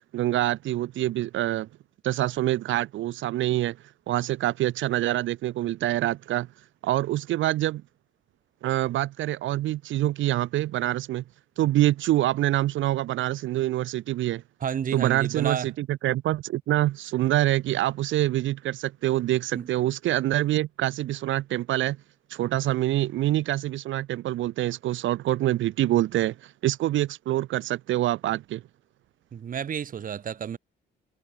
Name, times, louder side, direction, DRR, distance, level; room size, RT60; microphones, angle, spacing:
voice 1, 0.0-1.7 2.0-3.8 4.1-6.5 6.8-7.8 8.6-11.2 11.6-14.4 14.9-22.0 22.3-28.6, right 15 dB, 75° right, 0.6 m, -26 dB
voice 2, 14.6-15.7 19.5-19.7 29.3-30.6, right 8 dB, 45° right, 0.9 m, -30 dB
cardioid pair, 90°, 20 cm